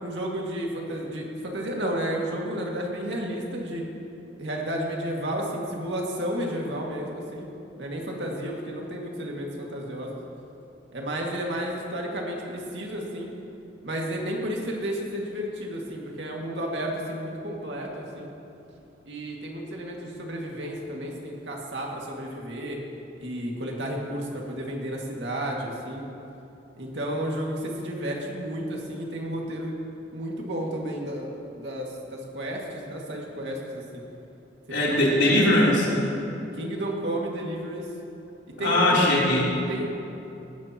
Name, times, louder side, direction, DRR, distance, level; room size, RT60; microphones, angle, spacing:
voice 1, 0.0-3.8 4.4-7.5 7.8-10.2 10.9-13.3 13.8-18.3 19.0-22.8 23.2-26.1 26.8-29.8 30.1-34.0 35.3-35.5 36.5-37.9 38.6-39.0 39.7-39.9, right 1 dB, 75° right, -1 dB, 2.1 m, -32 dB
voice 2, 34.7-36.0 38.6-39.5, left 1 dB, 80° left, -6 dB, 3.5 m, -20 dB
18.0 x 13.0 x 3.0 m, 2.8 s
head